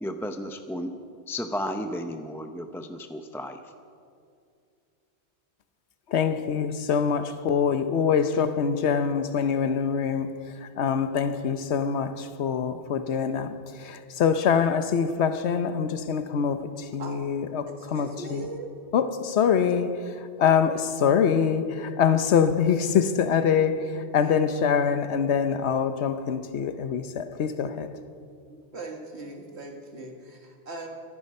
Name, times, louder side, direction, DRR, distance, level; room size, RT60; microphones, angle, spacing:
voice 1, 0.0-0.9 1.3-3.6, equal, 5° left, 0.5 m, -33 dB
voice 2, 6.1-10.3 10.6-18.4 18.9-19.9 20.4-27.9, left 7 dB, 80° left, 1.1 m, -24 dB
voice 3, 17.7-18.7 19.7-20.1 24.2-24.5 28.5-30.9, right 2 dB, 75° right, 2.1 m, -40 dB
23.5 x 11.0 x 5.4 m
omnidirectional pair, 1.1 m